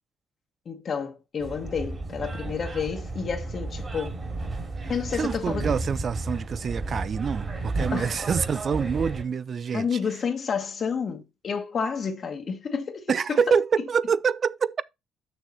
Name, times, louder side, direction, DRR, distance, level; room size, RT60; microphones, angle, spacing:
voice 1, 0.6-4.2 4.9-5.7 7.9-8.2 9.7-13.4, left 6 dB, 50° left, 1.4 m, -30 dB
sound 1, 1.4-9.2, right 2 dB, 30° right, 2.4 m, -33 dB
voice 2, 5.1-10.0 13.1-14.8, right 6 dB, 50° right, 0.4 m, -26 dB
6.4 x 6.4 x 4.3 m
cardioid pair, 90°, 0 cm